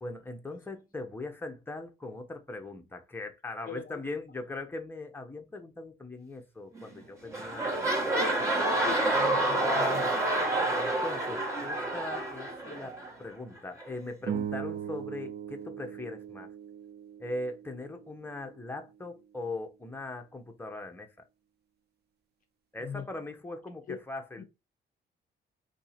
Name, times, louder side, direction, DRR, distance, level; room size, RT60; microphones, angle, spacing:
voice 1, 0.0-8.1 10.7-16.5 17.2-21.1 22.7-24.4, left 2 dB, 10° left, 0.9 m, -40 dB
voice 2, 3.7-4.0 8.8-10.2 22.8-23.0 23.9-24.0 24.4-24.5, left 8 dB, 45° left, 0.5 m, -40 dB
sound 1, 6.8-7.0 7.3-13.1 13.8-13.9, right 2 dB, 15° right, 1.5 m, -28 dB
sound 2, 14.2-18.7, right 8 dB, 55° right, 0.5 m, -39 dB
2.8 x 2.7 x 4.2 m
cardioid pair, 90°, 20 cm